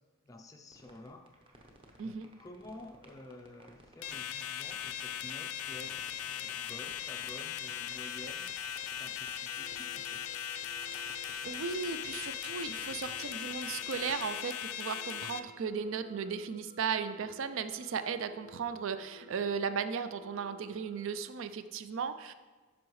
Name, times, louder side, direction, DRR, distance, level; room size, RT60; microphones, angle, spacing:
voice 1, 0.2-1.3 2.0-8.5 8.9-10.2, left 2 dB, 15° left, 3 dB, 0.3 m, -51 dB
sound 1, 0.7-14.3, right 1 dB, 25° right, 0.8 m, -58 dB
sound 2, 4.0-15.4, left 10 dB, 80° left, 0.4 m, -39 dB
sound 3, 9.5-21.1, equal, 40° right, 1.9 m, -56 dB
voice 2, 10.9-22.3, right 6 dB, 60° right, 11 dB, 0.4 m, -36 dB
9.3 x 6.1 x 3.1 m, 1.4 s
head